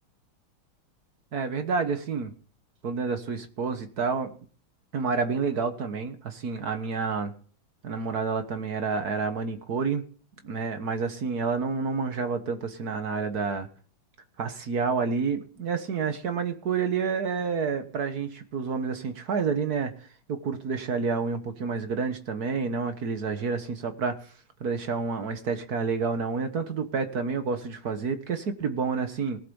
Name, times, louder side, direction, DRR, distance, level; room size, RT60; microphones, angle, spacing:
voice 1, 1.3-2.3 2.8-4.3 4.9-7.3 7.8-10.0 10.4-13.7 14.4-19.9 20.3-24.2 24.6-29.4, right 5 dB, 50° right, 8 dB, 1.6 m, -29 dB
18.5 x 7.9 x 5.4 m, 0.43 s
omnidirectional pair, 2.3 m